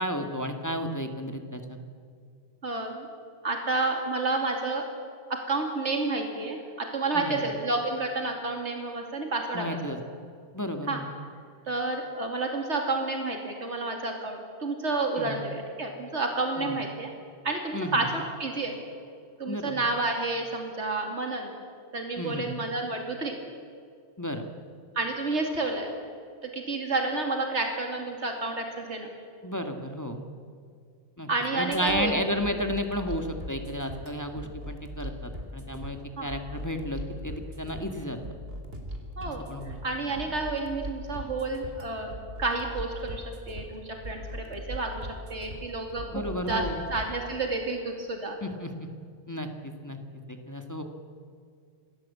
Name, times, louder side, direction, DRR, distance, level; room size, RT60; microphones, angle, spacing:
voice 1, 0.0-1.8 7.1-7.4 9.5-10.0 10.5-11.0 15.2-15.4 16.6-16.8 17.7-18.0 19.5-19.8 22.2-22.5 24.2-24.5 29.4-30.2 31.2-38.2 39.3-39.8 46.1-46.8 48.4-48.9 49.3-50.0 50.3-50.8, equal, 15° left, 5 dB, 2.0 m, -33 dB
voice 2, 2.6-3.1 3.4-4.8 5.3-9.8 10.9-11.0 11.7-17.1 17.4-18.7 19.4-21.5 21.9-23.4 24.9-25.9 26.4-29.1 31.3-32.1 36.2-36.3 39.2-42.1 42.4-46.6 46.9-48.4, right 3 dB, 85° right, 3 dB, 3.0 m, -30 dB
sound 1, 31.7-47.1, equal, 60° right, 3.7 m, -40 dB
27.5 x 20.0 x 8.5 m, 2.3 s
omnidirectional pair, 1.1 m